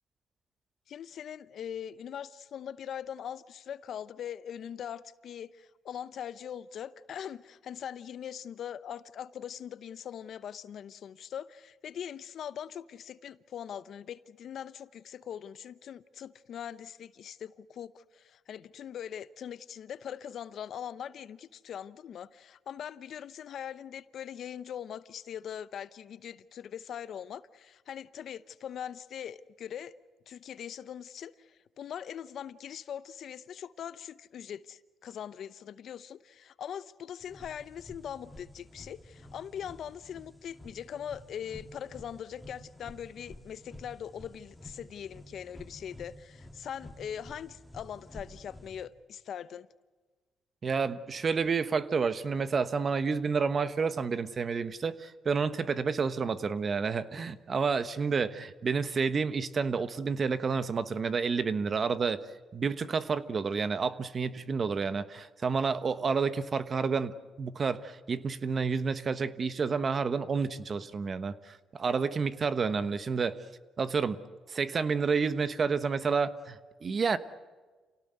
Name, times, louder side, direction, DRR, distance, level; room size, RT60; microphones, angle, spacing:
voice 1, 0.9-29.9 30.3-49.7, left 9 dB, 65° left, 0.8 m, -41 dB
sound 1, 37.2-48.8, left 1 dB, 5° left, 2.5 m, -51 dB
voice 2, 50.6-62.2 62.5-71.3 71.7-73.4 73.8-74.2 74.5-77.2, right 5 dB, 40° right, 1.2 m, -30 dB
28.0 x 18.0 x 8.0 m
cardioid pair, 90°, 0 cm